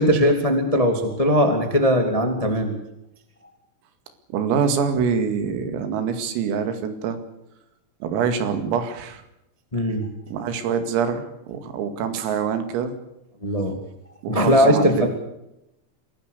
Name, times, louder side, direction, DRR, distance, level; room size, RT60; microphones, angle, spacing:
voice 1, 0.0-2.7 9.7-10.1 12.1-12.2 13.4-13.8 14.3-15.1, equal, 20° left, 5 dB, 1.0 m, -19 dB
voice 2, 4.3-7.2 8.0-9.2 10.3-12.9 14.2-15.1, right 6 dB, 80° right, 9 dB, 4.8 m, -25 dB
26.0 x 17.5 x 6.7 m, 0.86 s
omnidirectional pair, 6.0 m